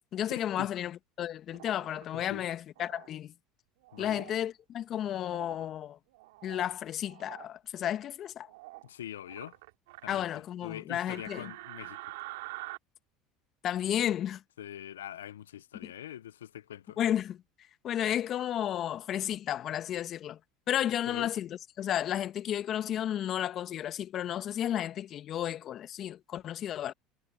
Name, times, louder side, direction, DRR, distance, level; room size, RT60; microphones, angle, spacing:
voice 1, 0.1-3.3 4.0-6.0 6.4-8.5 10.1-11.5 13.6-14.4 15.8-15.9 17.0-17.4 17.8-20.4 20.7-26.9, left 11 dB, 45° left, 1.8 m, -33 dB
sound 1, 1.5-2.0 2.8-3.1 3.8-4.4 5.2-5.7 6.1-6.7 7.0-7.5 8.5-8.9 9.3-10.2 11.1-12.8, right 21 dB, 75° right, 2.5 m, -46 dB
voice 2, 2.1-2.5 3.9-4.3 8.8-9.6 10.0-10.2 10.6-12.1 14.6-17.0 21.1-21.3, left 11 dB, 85° left, 0.8 m, -43 dB
hypercardioid pair, 75°, 0 cm